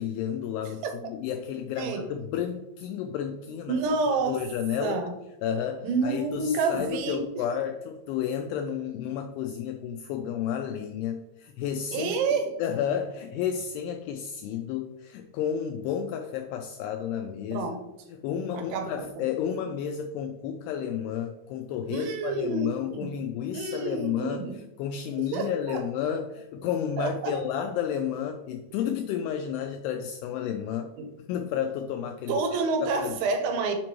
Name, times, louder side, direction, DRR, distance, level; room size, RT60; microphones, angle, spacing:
voice 1, 0.0-3.8 4.1-5.0 5.4-12.2 12.6-17.7 18.1-30.9 31.2-33.2, left 8 dB, 90° left, 5 dB, 2.3 m, -31 dB
voice 2, 3.7-4.4 4.8-5.1 5.8-7.3 11.9-12.5 17.5-17.8 18.5-19.3 21.9-23.1 23.5-24.6 25.2-25.8 27.0-27.4 31.0-31.1 32.3-33.8, right 4 dB, 85° right, 6 dB, 3.3 m, -29 dB
7.3 x 5.1 x 3.0 m, 0.94 s
omnidirectional pair, 5.2 m